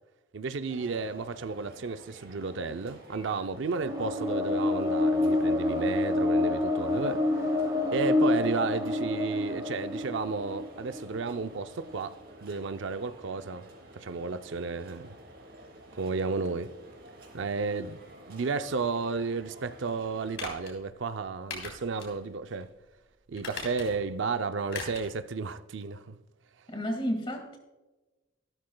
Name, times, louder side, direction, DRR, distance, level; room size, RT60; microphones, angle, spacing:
voice 1, 0.3-7.6 7.9-12.1 12.4-13.7 13.9-15.1 16.0-16.7 17.3-18.0 18.3-22.7 23.3-26.2, right 4 dB, 65° right, 0.5 m, -33 dB
sound 1, 0.7-20.4, right 1 dB, 50° right, 3.1 m, -50 dB
sound 2, 3.8-11.9, left 2 dB, 20° right, 1.1 m, -28 dB
sound 3, 20.3-20.7 21.5-22.1 22.5-22.6 23.3-24.1 24.7-25.1 25.4-25.5, left 4 dB, 65° left, 3.3 m, -39 dB
voice 2, 26.7-27.6, equal, 25° left, 1.9 m, -31 dB
14.5 x 12.5 x 2.2 m
head